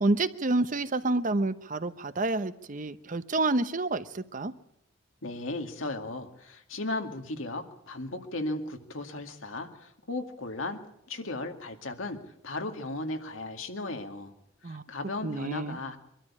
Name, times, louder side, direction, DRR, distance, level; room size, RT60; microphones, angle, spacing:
voice 1, 0.0-4.5 14.6-14.9 15.2-15.8, right 2 dB, 40° right, 13 dB, 0.8 m, -28 dB
voice 2, 5.2-10.8 11.1-12.2 12.4-14.3 14.6-16.0, left 2 dB, 85° left, 5 dB, 2.2 m, -36 dB
23.5 x 13.0 x 8.6 m, 0.80 s
head